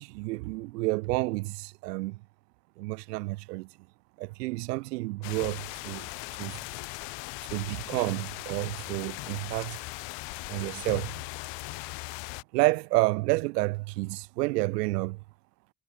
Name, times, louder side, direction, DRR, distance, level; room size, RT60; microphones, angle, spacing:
voice 1, 0.0-2.2 2.8-3.7 4.2-6.1 6.4-6.6 7.5-9.8 10.5-11.1 12.5-15.2, right 23 dB, 80° right, 0.9 m, -30 dB
sound 1, 5.2-12.4, left 26 dB, 65° left, 0.6 m, -39 dB
figure-of-eight pair, 40°, 47 cm